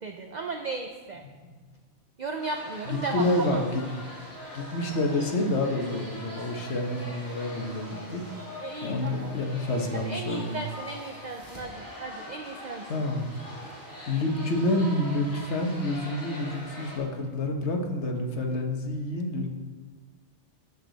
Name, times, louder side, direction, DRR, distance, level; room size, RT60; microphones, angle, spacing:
voice 1, 0.0-1.2 2.2-3.6 8.6-9.6 10.0-13.0, right 3 dB, 50° right, 4 dB, 0.6 m, -35 dB
sound 1, 2.4-17.0, left 1 dB, 15° left, 2.6 m, -42 dB
voice 2, 2.9-3.8 4.5-8.2 8.8-10.6 12.9-13.3 14.1-19.5, left 1 dB, 70° left, 3 dB, 1.4 m, -28 dB
12.5 x 6.4 x 4.0 m, 1.4 s
omnidirectional pair, 1.2 m